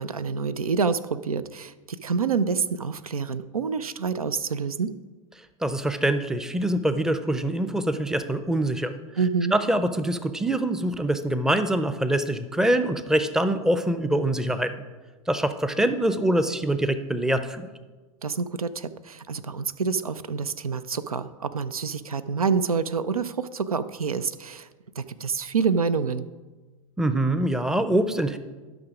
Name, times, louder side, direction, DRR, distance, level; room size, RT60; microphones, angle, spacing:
voice 1, 0.0-4.9 9.2-9.5 18.2-24.7 25.0-26.3, right 5 dB, 85° right, 14 dB, 0.5 m, -27 dB
voice 2, 5.6-8.9 9.5-14.7 15.3-17.7 27.0-28.4, right 1 dB, 5° right, 11 dB, 0.5 m, -24 dB
12.0 x 6.0 x 4.9 m, 1.3 s
figure-of-eight pair, 95°, 18 cm